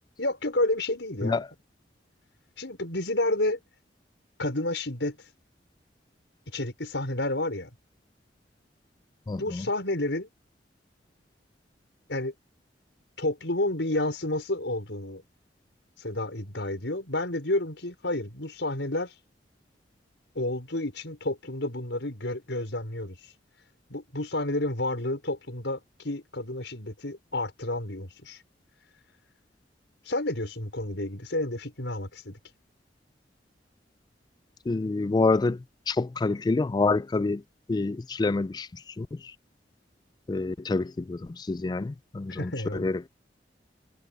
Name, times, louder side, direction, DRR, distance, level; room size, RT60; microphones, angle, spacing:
voice 1, 0.2-1.4 2.6-3.6 4.4-5.2 6.5-7.7 9.4-10.3 12.1-12.3 13.2-15.2 16.0-19.1 20.4-23.2 23.9-28.4 30.1-32.4 42.3-42.9, left 1 dB, 80° left, 5.5 m, -30 dB
voice 2, 9.3-9.6 34.7-35.6 35.9-37.4 37.7-38.7 39.0-39.1 40.3-41.2 41.5-43.0, left 3 dB, 25° left, 0.3 m, -27 dB
head